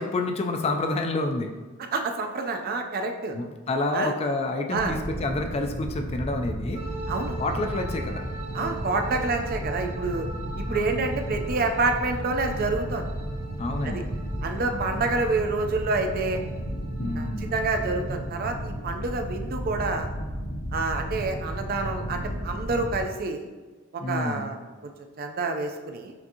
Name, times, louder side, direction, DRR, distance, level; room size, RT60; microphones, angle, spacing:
voice 1, 0.0-1.5 3.3-6.8 7.4-8.3 8.5-8.8 10.7-11.0 13.6-14.1 14.6-14.9 17.0-17.5 24.0-24.5, left 2 dB, 30° left, 4 dB, 0.3 m, -29 dB
voice 2, 1.9-3.4 3.9-4.1 4.7-5.0 7.1-7.4 8.5-10.3 10.6-13.1 13.8-14.0 14.4-16.4 17.2-20.1 20.7-23.5 23.9-24.6 24.8-24.9 25.2-26.1, right 3 dB, 45° right, 5 dB, 0.4 m, -28 dB
sound 1, 4.7-23.0, equal, 80° left, 1.4 m, -33 dB
sound 2, 6.7-18.4, right 3 dB, 85° right, 0.6 m, -43 dB
5.8 x 2.7 x 2.6 m, 1.3 s
head